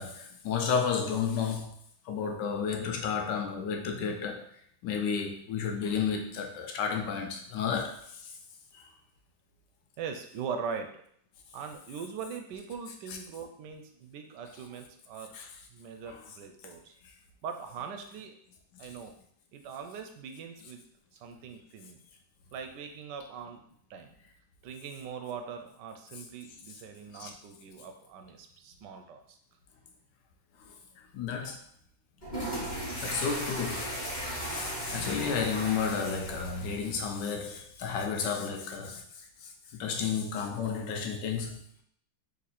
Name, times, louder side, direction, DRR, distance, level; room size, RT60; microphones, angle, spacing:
voice 1, 0.0-1.7 2.0-4.4 4.8-8.3 8.7-8.9 13.1-13.2 15.3-15.5 16.1-16.2 26.1-26.2 26.7-26.8 27.1-27.3 30.6-31.6 33.0-34.1 34.4-41.6, left 6 dB, 70° left, 1.3 m, -32 dB
voice 2, 10.0-10.9 11.5-15.3 15.7-16.9 17.4-18.3 18.8-19.1 19.5-20.8 21.2-22.0 22.5-23.6 23.9-24.1 24.6-29.2 31.5-31.6 40.5-40.6, right 6 dB, 75° right, 1.1 m, -41 dB
sound 1, 32.2-37.2, equal, 25° left, 1.5 m, -37 dB
4.1 x 2.8 x 4.2 m
omnidirectional pair, 2.1 m